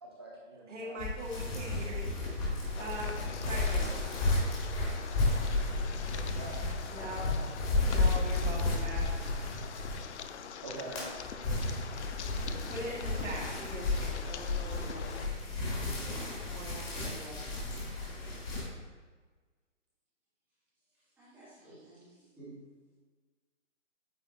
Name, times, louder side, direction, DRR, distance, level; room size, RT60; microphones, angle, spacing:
voice 1, 0.0-1.0 3.4-3.9 5.9-6.6 10.6-11.7, right 2 dB, 20° right, -2 dB, 0.7 m, -45 dB
voice 2, 0.7-2.1 2.8-3.9 6.9-7.3 7.8-9.1 12.7-15.3 16.0-17.4, right 1 dB, 75° right, -2 dB, 1.9 m, -42 dB
sound 1, 1.0-10.3 10.7-18.6, left 2 dB, 30° left, 2.2 m, -33 dB
sound 2, 2.7-15.3, left 8 dB, 65° left, 0.5 m, -45 dB
voice 3, 21.0-22.7, right 2 dB, 5° right, -12 dB, 1.9 m, -53 dB
8.8 x 4.0 x 4.1 m, 1.4 s
hypercardioid pair, 170°, 37 cm